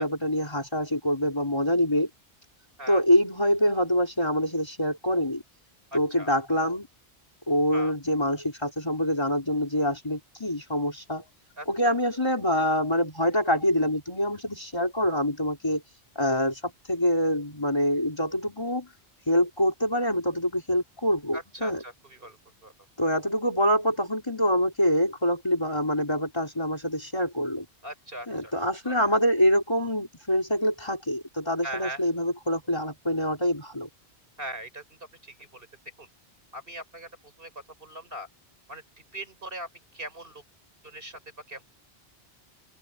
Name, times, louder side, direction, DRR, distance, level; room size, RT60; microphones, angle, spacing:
voice 1, 0.0-2.1 2.9-5.4 5.9-6.9 7.5-11.2 11.7-15.8 16.2-16.6 16.9-18.9 19.3-21.8 23.0-27.7 28.3-33.9, equal, 25° left, 3.9 m, -25 dB
voice 2, 5.9-6.3 7.7-7.9 11.6-11.9 21.3-22.7 27.8-28.5 28.8-29.0 31.6-32.0 34.4-35.7 36.0-36.1 36.5-37.5 37.8-38.3 38.7-38.8 39.1-39.7 39.9-40.4 40.8-41.2 41.5-41.6, right 1 dB, 60° right, 5.7 m, -40 dB
omnidirectional pair, 1.1 m